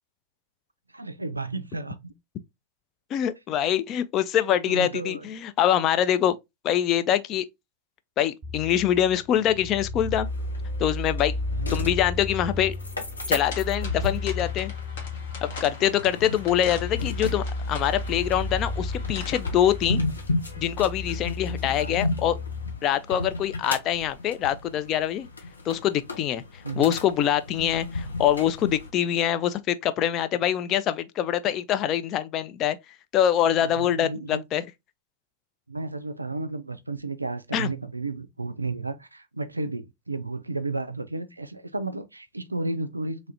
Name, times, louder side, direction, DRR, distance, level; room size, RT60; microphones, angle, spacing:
voice 1, 0.9-2.1 4.7-5.2 11.5-12.0 21.6-22.0 26.6-27.0 33.6-34.4 35.7-43.2, right 3 dB, 85° right, 0.3 m, -33 dB
voice 2, 3.1-6.4 6.6-7.5 8.2-10.3 10.8-11.3 11.7-12.8 13.3-14.7 15.4-20.0 20.6-22.4 22.8-25.3 25.6-34.7 37.5-37.7, left 10 dB, 35° left, 0.3 m, -24 dB
sound 1, 8.4-22.7, left 3 dB, 25° right, 0.8 m, -33 dB
sound 2, 10.2-28.9, left 2 dB, 80° left, 0.7 m, -35 dB
sound 3, 13.5-19.8, left 3 dB, 55° left, 1.1 m, -43 dB
3.1 x 2.4 x 2.6 m
figure-of-eight pair, 90°, 0 cm